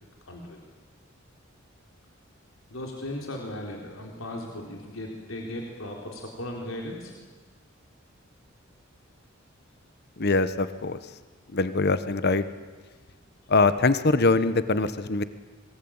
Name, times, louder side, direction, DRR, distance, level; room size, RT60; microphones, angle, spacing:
voice 1, 0.2-0.7 2.7-7.2, left 1 dB, 90° left, 0 dB, 4.0 m, -37 dB
voice 2, 10.2-11.0 11.5-12.4 13.5-15.2, left 3 dB, 55° left, 13 dB, 1.2 m, -23 dB
26.5 x 22.0 x 8.9 m, 1.4 s
head